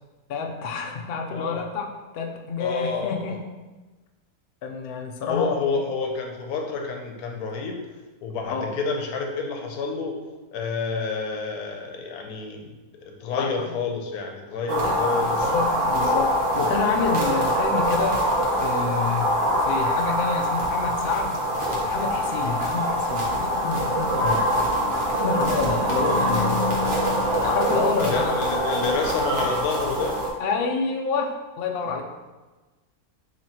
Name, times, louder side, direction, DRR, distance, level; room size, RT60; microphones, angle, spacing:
voice 1, 0.3-1.8 2.1-3.4 4.6-5.5 8.5-8.6 13.4-13.8 14.7-15.0 15.3-18.3 18.6-19.3 19.6-21.4 21.8-24.4 25.2-26.7 27.4-28.4 30.4-32.0, left 5 dB, 70° left, 2 dB, 0.5 m, -28 dB
voice 2, 2.6-3.4 5.3-7.8 8.2-10.2 10.5-12.7 13.0-15.5 19.1-19.2 22.4-22.6 24.2-24.4 28.0-30.2 31.9-32.0, left 4 dB, 85° left, 2 dB, 1.1 m, -29 dB
sound 1, 14.7-30.3, equal, 45° right, 0.8 m, -24 dB
3.0 x 2.9 x 4.2 m, 1.2 s
omnidirectional pair, 1.5 m